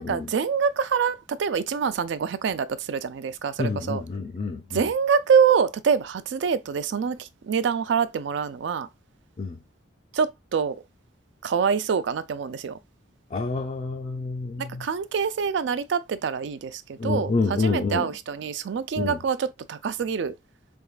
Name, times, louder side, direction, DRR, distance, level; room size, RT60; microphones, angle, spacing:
voice 1, 0.0-4.0 4.7-8.9 10.1-10.8 11.4-12.8 14.6-20.3, right 6 dB, 65° right, 0.3 m, -25 dB
voice 2, 3.6-4.9 9.4-9.6 13.3-14.9 17.0-18.1 19.0-19.2, left 3 dB, 35° left, 0.4 m, -28 dB
3.8 x 3.5 x 2.3 m
head